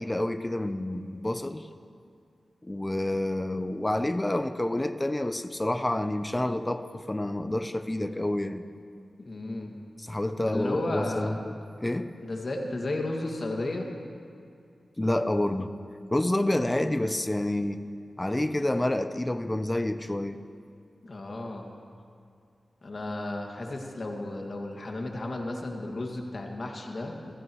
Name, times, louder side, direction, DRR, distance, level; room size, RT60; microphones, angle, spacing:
voice 1, 0.0-1.7 2.6-8.6 10.0-11.5 11.8-12.1 15.0-15.7 16.1-17.8 18.2-20.4, left 1 dB, 20° left, 10 dB, 0.7 m, -28 dB
voice 2, 9.2-9.8 10.4-11.4 12.2-13.9 21.0-21.7 22.8-27.3, left 2 dB, 55° left, 1 dB, 2.1 m, -33 dB
26.5 x 15.5 x 3.1 m, 2.4 s
cardioid pair, 65°, 0 cm